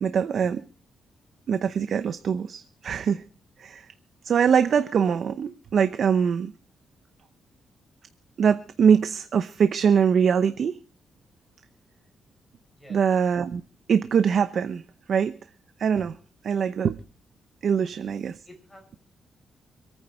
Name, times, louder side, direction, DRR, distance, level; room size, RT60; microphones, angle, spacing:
voice 1, 0.0-0.7 1.5-3.2 3.6-3.9 4.2-6.5 8.4-10.8 12.9-13.6 13.9-14.8 15.1-15.4 15.8-16.2 16.4-17.0 17.6-18.4, right 7 dB, 60° right, 0.8 m, -23 dB
voice 2, 18.4-19.0, left 1 dB, 15° left, 5.8 m, -51 dB
26.0 x 9.4 x 4.3 m
cardioid pair, 115°, 0 cm